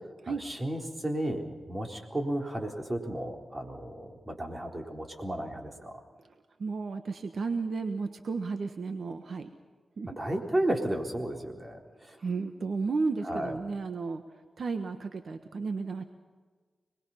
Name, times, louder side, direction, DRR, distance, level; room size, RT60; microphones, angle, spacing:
voice 1, 0.3-6.0 10.2-11.8 12.1-12.2 13.2-13.5, right 1 dB, 25° right, 2 dB, 3.9 m, -33 dB
voice 2, 6.6-9.5 10.0-10.2 12.2-14.2 14.6-16.0, right 4 dB, 70° right, 7 dB, 1.3 m, -33 dB
26.5 x 21.0 x 5.8 m, 1.4 s
wide cardioid pair, 75°, 0 cm